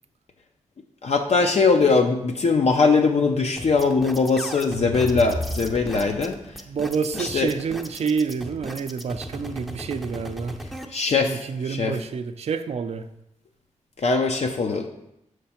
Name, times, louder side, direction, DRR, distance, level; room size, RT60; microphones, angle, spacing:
voice 1, 1.0-6.4 7.3-7.5 10.9-11.4 11.7-11.9 14.0-14.9, left 4 dB, 60° left, 3 dB, 0.6 m, -21 dB
sound 1, 3.6-10.8, equal, ahead, 0.5 m, -37 dB
sound 2, 4.6-6.5, left 2 dB, 30° left, 0.8 m, -33 dB
voice 2, 6.7-10.6 11.3-13.1, right 6 dB, 55° right, 9 dB, 0.4 m, -28 dB
6.7 x 3.2 x 5.7 m, 0.82 s
wide cardioid pair, 85°, 13 cm